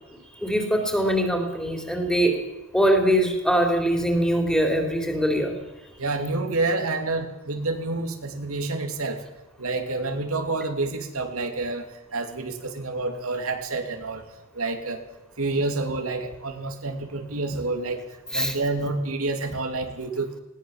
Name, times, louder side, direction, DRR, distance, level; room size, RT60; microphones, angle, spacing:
voice 1, 0.3-2.4 2.7-5.5 18.3-18.5, equal, 5° left, 4 dB, 3.6 m, -22 dB
voice 2, 6.0-9.2 9.6-11.9 12.1-14.2 14.5-15.0 15.4-18.0 18.3-20.3, right 3 dB, 85° right, 5 dB, 2.8 m, -28 dB
20.0 x 18.0 x 7.3 m, 1.0 s
head